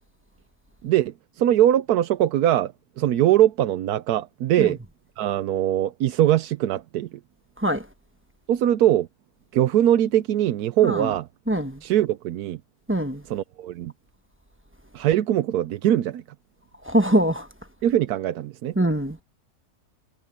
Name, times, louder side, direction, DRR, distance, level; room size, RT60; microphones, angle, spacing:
voice 1, 0.8-4.8 5.2-7.1 8.5-9.1 9.5-11.3 11.8-12.6 13.3-13.9 14.9-16.2 17.8-18.7, right 12 dB, 90° right, 1.2 m, -21 dB
voice 2, 11.5-11.8 12.9-13.2 16.8-17.5 18.8-19.2, right 1 dB, 10° right, 0.9 m, -23 dB
omnidirectional pair, 1.6 m